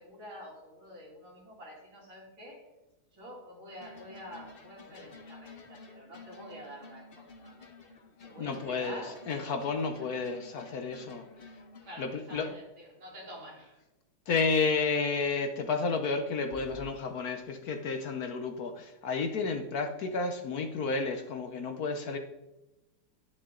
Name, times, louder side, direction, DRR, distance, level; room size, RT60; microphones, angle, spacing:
voice 1, 0.0-2.7 3.1-7.7 8.2-9.2 11.8-13.8, equal, 80° right, -4 dB, 3.5 m, -48 dB
sound 1, 3.8-12.6 16.5-16.9, left 3 dB, 40° left, 0.9 m, -51 dB
voice 2, 8.4-11.6 12.0-12.5 14.3-22.2, left 4 dB, 60° left, 6 dB, 1.1 m, -31 dB
10.0 x 9.9 x 3.8 m, 0.98 s
omnidirectional pair, 2.2 m